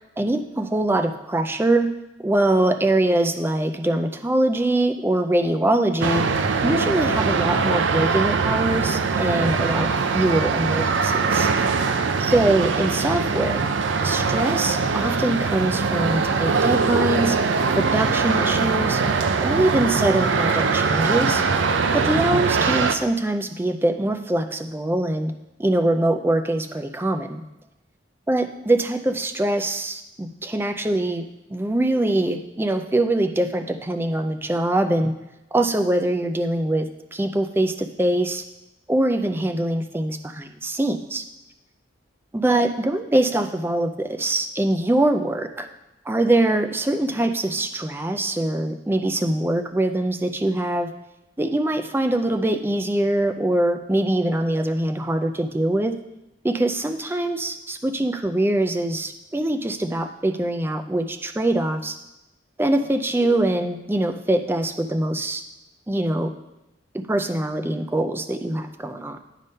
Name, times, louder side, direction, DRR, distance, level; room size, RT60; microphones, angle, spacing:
voice 1, 0.2-1.9 2.2-6.3 6.6-11.5 12.2-13.6 14.0-17.4 17.7-19.0 19.4-21.4 21.9-25.3 25.6-27.4 28.3-35.1 35.5-38.4 38.9-41.2 42.3-45.7 46.1-50.9 51.4-55.9 56.4-62.0 62.6-65.4 65.9-66.3 67.1-69.2, right 1 dB, 10° right, 7 dB, 0.4 m, -23 dB
sound 1, 6.0-23.0, right 4 dB, 75° right, 0.5 m, -22 dB
9.1 x 3.5 x 5.4 m, 0.93 s
head